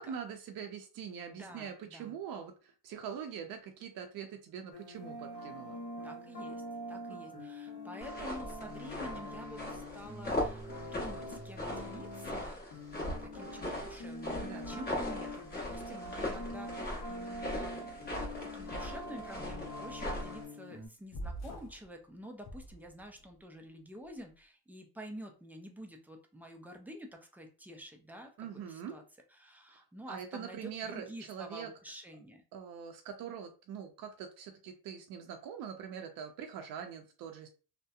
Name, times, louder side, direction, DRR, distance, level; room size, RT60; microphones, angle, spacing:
voice 1, 0.0-5.8 7.1-7.5 14.4-14.8 28.4-29.0 30.1-31.7 32.5-37.5, right 7 dB, 55° right, 4 dB, 0.5 m, -43 dB
voice 2, 1.3-2.2 6.0-6.6 6.9-12.6 13.0-18.1 18.4-29.0 29.3-32.4, equal, 5° right, 3 dB, 0.3 m, -49 dB
sound 1, 4.7-20.9, left 1 dB, 65° left, 1.1 m, -44 dB
sound 2, 8.0-20.4, left 1 dB, 25° left, 1.0 m, -39 dB
sound 3, 21.1-21.9 22.4-23.3, right 1 dB, 40° left, 0.6 m, -43 dB
2.7 x 2.1 x 2.3 m, 0.35 s
cardioid pair, 105°, 41 cm